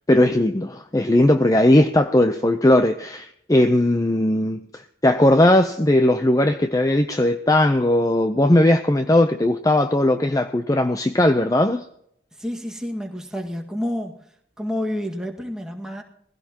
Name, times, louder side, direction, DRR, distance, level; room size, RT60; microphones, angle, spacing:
voice 1, 0.1-11.8, left 1 dB, 20° left, 8 dB, 0.6 m, -18 dB
voice 2, 12.3-14.3 14.6-16.0, left 1 dB, 5° right, 1 dB, 1.8 m, -29 dB
21.0 x 16.0 x 2.9 m, 0.71 s
head